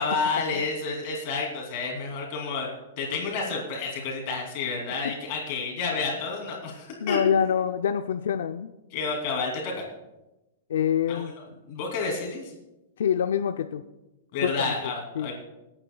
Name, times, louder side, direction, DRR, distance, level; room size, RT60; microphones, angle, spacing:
voice 1, 0.0-2.7 3.0-7.2 8.9-9.8 11.1-11.2 11.7-12.5 14.3-15.3, left 4 dB, 40° left, 0 dB, 2.8 m, -30 dB
voice 2, 7.0-8.7 10.7-11.3 13.0-13.8 14.4-15.3, left 8 dB, 80° left, 8 dB, 0.5 m, -26 dB
25.0 x 8.8 x 2.3 m, 0.99 s
supercardioid pair, 170°, 0 cm